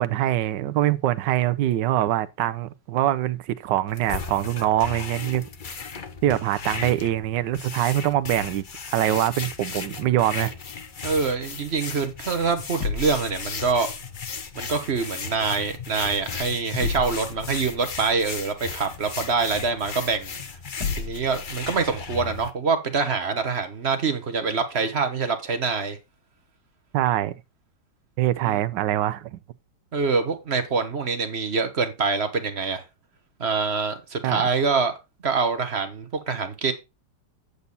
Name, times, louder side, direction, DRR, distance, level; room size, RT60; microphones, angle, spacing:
voice 1, 0.0-5.4 6.2-10.5 26.9-27.3 28.2-29.4 34.2-34.4, right 13 dB, 80° right, 1.3 m, -24 dB
sound 1, 3.9-22.5, left 6 dB, 45° left, 0.7 m, -36 dB
voice 2, 11.0-13.9 14.5-20.3 21.0-26.0 28.4-28.6 29.9-32.8 33.4-34.9 35.2-36.7, right 4 dB, 40° right, 1.3 m, -25 dB
sound 2, 12.3-22.4, left 5 dB, 65° left, 2.8 m, -37 dB
8.4 x 6.9 x 4.0 m
omnidirectional pair, 1.9 m